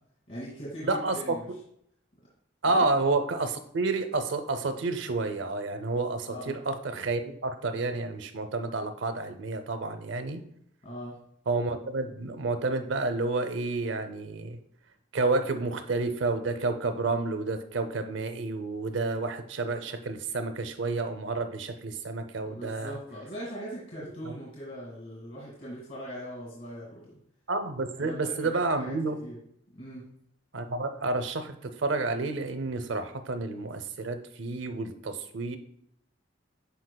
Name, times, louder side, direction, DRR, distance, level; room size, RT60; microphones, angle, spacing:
voice 1, 0.3-1.5 2.6-2.9 6.3-6.6 10.8-11.2 22.5-27.1 27.9-28.9 29.2-29.4 29.7-30.1, equal, 50° left, -6 dB, 2.0 m, -40 dB
voice 2, 0.8-1.4 2.6-10.4 11.5-14.6 15.1-23.0 24.2-24.3 27.5-29.2 30.5-35.6, right 3 dB, 75° right, 8 dB, 0.6 m, -30 dB
10.5 x 4.6 x 2.3 m, 0.71 s
head